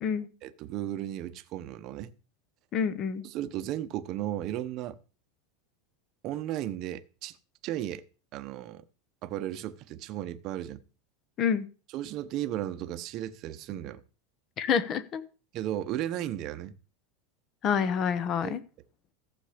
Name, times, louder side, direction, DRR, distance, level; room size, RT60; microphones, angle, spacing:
voice 1, 0.4-2.1 3.2-5.0 6.2-7.4 7.6-8.0 8.3-8.8 9.2-10.8 11.9-14.0 15.5-16.7 18.4-18.5, right 12 dB, 35° right, 0.9 m, -35 dB
voice 2, 2.7-3.2 11.4-11.7 14.6-15.2 17.6-18.6, left 7 dB, 30° left, 1.0 m, -27 dB
14.5 x 6.9 x 5.1 m
supercardioid pair, 165°, 0 cm